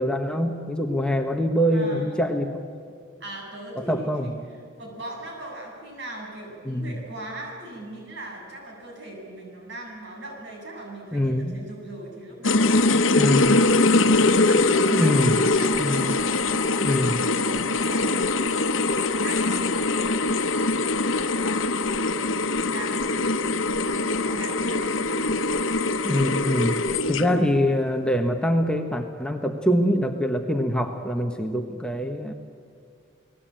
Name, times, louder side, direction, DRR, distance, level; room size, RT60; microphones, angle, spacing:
voice 1, 0.0-2.6 3.9-4.3 6.6-7.0 11.1-11.6 13.1-13.5 14.9-15.4 15.7-16.1 16.8-17.2 26.0-26.8 27.1-32.3, equal, 5° left, 3 dB, 1.2 m, -24 dB
voice 2, 1.7-2.1 2.8-2.9 3.2-16.9 17.2-20.6 21.2-22.2 22.7-25.8, right 1 dB, 60° right, 0 dB, 7.6 m, -40 dB
sound 1, 12.4-27.5, left 3 dB, 70° left, 1.2 m, -22 dB
29.5 x 19.5 x 9.0 m, 2.2 s
head